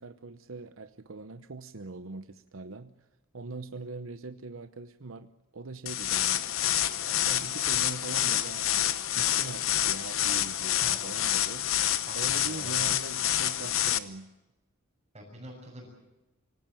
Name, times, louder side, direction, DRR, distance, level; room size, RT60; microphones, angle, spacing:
voice 1, 0.0-2.9 3.3-6.4 7.0-11.7 12.1-14.3, right 3 dB, 70° right, 10 dB, 0.9 m, -42 dB
sound 1, 5.9-14.0, left 12 dB, 75° left, 1.0 m, -28 dB
voice 2, 12.1-12.9 15.1-15.9, equal, 30° right, -5 dB, 6.5 m, -46 dB
25.5 x 17.5 x 9.1 m, 1.0 s
head